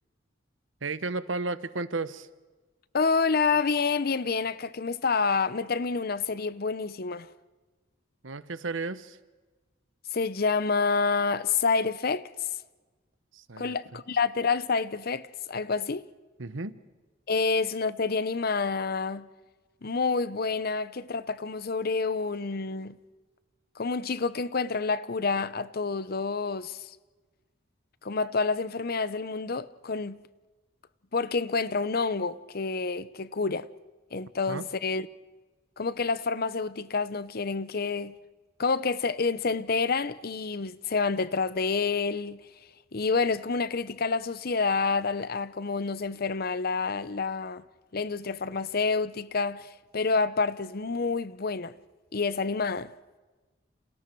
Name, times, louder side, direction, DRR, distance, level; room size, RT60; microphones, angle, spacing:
voice 1, 0.8-2.3 8.2-9.2 13.3-14.0 16.4-16.8 34.5-34.7, right 3 dB, 85° right, 1.1 m, -33 dB
voice 2, 2.9-7.3 10.1-12.2 13.6-16.0 17.3-19.3 19.8-23.0 23.8-27.0 28.0-30.2 31.1-33.7 34.1-35.1 35.8-38.1 38.6-42.4 42.9-47.6 47.9-51.7 52.1-52.9, left 4 dB, 50° left, 0.8 m, -28 dB
30.0 x 28.0 x 4.7 m
head